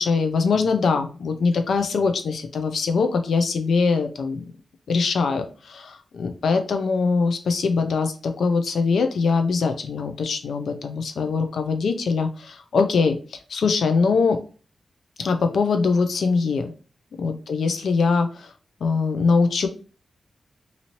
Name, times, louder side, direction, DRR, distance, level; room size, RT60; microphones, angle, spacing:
voice 1, 0.0-4.5 4.9-14.4 15.2-16.7 17.2-18.5 18.8-19.7, left 4 dB, 85° left, 7 dB, 0.5 m, -22 dB
2.8 x 2.7 x 2.9 m, 0.37 s
cardioid pair, 70°, 0 cm